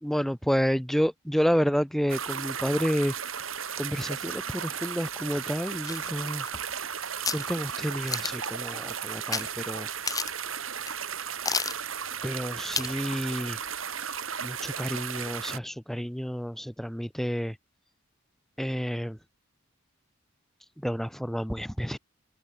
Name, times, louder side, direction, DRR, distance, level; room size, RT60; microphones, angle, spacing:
voice 1, 0.0-3.1 3.8-6.5 7.3-9.9 12.2-13.6 14.4-17.6 18.6-19.2 20.8-22.0, equal, ahead, 1.7 m, -29 dB
sound 1, 2.1-15.6, right 7 dB, 90° right, 4.8 m, -35 dB
sound 2, 5.8-6.9 7.2-7.5 8.1-8.5 9.3-9.5 9.8-9.9 10.1-10.5 10.9-11.0 11.5-11.8 12.7-13.0 13.4-13.5, left 5 dB, 20° left, 5.1 m, -31 dB
open air
head